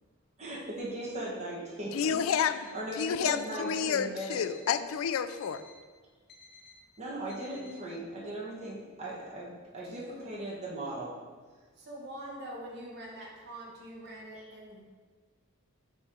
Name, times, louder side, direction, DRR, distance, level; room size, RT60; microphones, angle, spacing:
voice 1, 0.4-4.4 7.0-11.1, right 1 dB, 35° right, -5 dB, 1.4 m, -38 dB
voice 2, 1.9-2.6 3.0-5.6, left 7 dB, 80° left, 12 dB, 0.3 m, -29 dB
Alarm, 2.1-2.8 3.3-3.8 4.3-4.8 5.3-5.8 6.3-6.8 7.3-7.8, left 3 dB, 50° left, 0.8 m, -55 dB
voice 3, 9.8-10.2 11.7-14.8, right 1 dB, 55° right, -2 dB, 1.3 m, -44 dB
8.8 x 3.2 x 3.8 m, 1.5 s
head